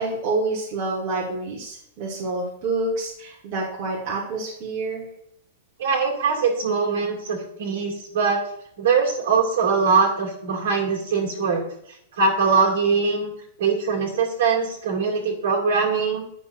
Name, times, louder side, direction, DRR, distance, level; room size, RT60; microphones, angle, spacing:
voice 1, 0.0-5.1, right 3 dB, 30° right, -4 dB, 1.2 m, -28 dB
voice 2, 5.8-8.4 8.8-11.6 12.2-13.3 13.6-16.3, right 5 dB, 60° right, 0 dB, 2.1 m, -22 dB
9.6 x 5.8 x 2.5 m, 0.72 s
supercardioid pair, 175°, 0 cm